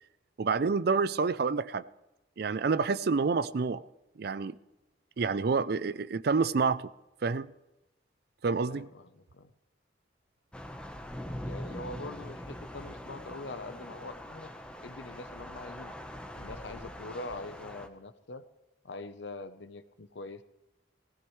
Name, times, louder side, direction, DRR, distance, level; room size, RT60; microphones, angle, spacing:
voice 1, 0.4-1.8 2.4-3.8 4.2-4.6 5.2-6.9 7.2-7.5 8.4-8.9, right 4 dB, 55° right, 0.4 m, -28 dB
voice 2, 8.7-9.5 11.4-14.5 14.8-15.9 16.3-18.4 18.8-20.4, left 2 dB, 70° left, 0.8 m, -43 dB
Thunder / Rain, 10.5-17.9, equal, 5° left, 1.0 m, -43 dB
18.5 x 16.5 x 3.2 m
head